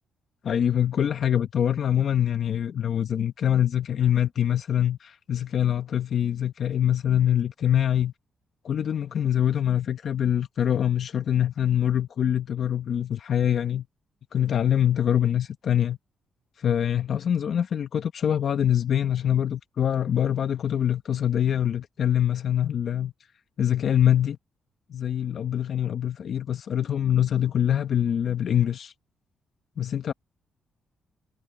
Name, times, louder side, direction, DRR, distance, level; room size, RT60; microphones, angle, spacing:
voice 1, 0.4-8.1 8.6-13.8 14.3-16.0 16.6-23.1 23.6-24.4 24.9-28.9 29.8-30.1, left 10 dB, 60° left, 1.0 m, -24 dB
cardioid pair, 105°, 0 cm